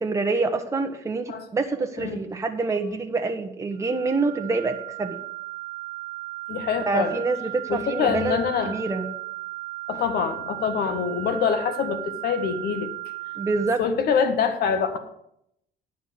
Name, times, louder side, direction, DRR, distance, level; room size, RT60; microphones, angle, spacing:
voice 1, 0.0-5.2 6.9-8.4 8.6-9.1 13.4-13.8, right 3 dB, 15° right, 4 dB, 1.0 m, -26 dB
sound 1, 3.8-13.7, right 20 dB, 50° right, 1.2 m, -36 dB
voice 2, 6.5-7.2 7.7-8.8 9.9-12.9 13.8-15.0, left 6 dB, 65° left, 8 dB, 1.6 m, -25 dB
10.0 x 5.5 x 8.0 m, 0.75 s
cardioid pair, 110°, 17 cm